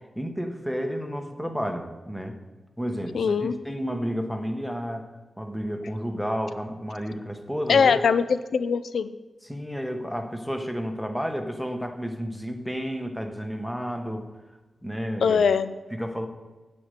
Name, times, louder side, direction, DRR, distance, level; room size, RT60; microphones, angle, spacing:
voice 1, 0.1-2.4 2.8-5.1 5.4-8.0 9.5-14.3 14.8-15.4 15.9-16.3, equal, 5° left, 5 dB, 0.9 m, -31 dB
voice 2, 3.1-3.5 7.7-9.1 15.2-15.7, left 6 dB, 90° left, 13 dB, 0.4 m, -21 dB
9.5 x 5.2 x 8.1 m, 1.2 s
wide cardioid pair, 175°, 0 cm